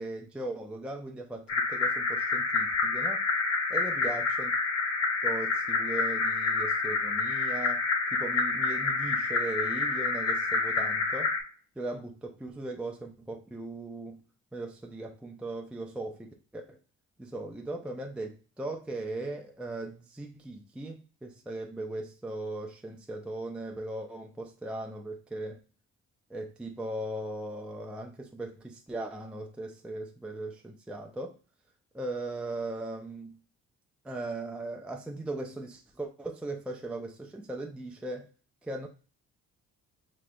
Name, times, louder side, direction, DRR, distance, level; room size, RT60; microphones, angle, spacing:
voice 1, 0.0-3.2 3.7-4.5 5.2-7.9 8.1-11.3 11.8-14.2 14.5-16.8 17.2-25.6 26.3-31.3 31.9-33.4 34.0-38.3 38.6-38.9, right 2 dB, 5° right, 0.4 m, -38 dB
sound 1, 1.5-11.4, left 4 dB, 55° left, 0.9 m, -28 dB
4.7 x 3.0 x 2.2 m
cardioid pair, 90°, 30 cm